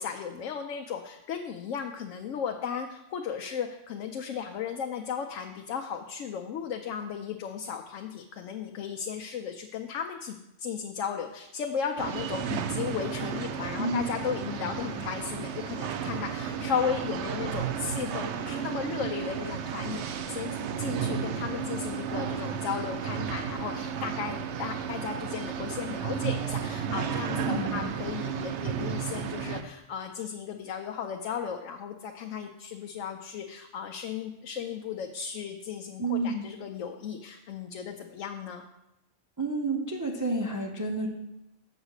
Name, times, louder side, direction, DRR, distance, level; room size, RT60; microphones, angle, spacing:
voice 1, 0.0-38.6, left 7 dB, 85° left, 3 dB, 1.0 m, -35 dB
sound 1, 12.0-29.6, right 7 dB, 70° right, 0.9 m, -33 dB
voice 2, 14.4-14.9 27.5-27.9 36.0-36.5 39.4-41.1, right 2 dB, 20° right, 0 dB, 0.5 m, -30 dB
7.3 x 5.0 x 6.4 m, 0.91 s
omnidirectional pair, 1.3 m